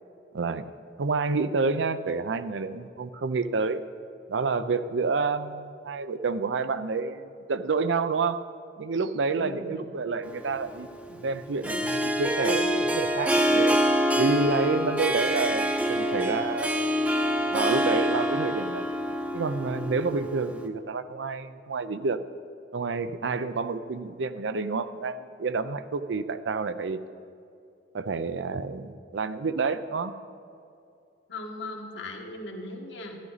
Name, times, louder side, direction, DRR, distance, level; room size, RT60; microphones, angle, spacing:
voice 1, 0.3-0.7 1.0-3.8 4.3-8.4 8.8-13.8 14.2-17.0 17.5-18.9 19.3-22.2 22.7-27.0 27.9-30.1, right 4 dB, 85° right, 12 dB, 0.5 m, -29 dB
voice 2, 9.4-9.9 31.3-33.2, left 2 dB, 75° left, 1 dB, 1.5 m, -38 dB
Harp, 10.3-20.7, equal, 10° right, 0.6 m, -26 dB
13.5 x 11.0 x 4.0 m, 2.5 s
head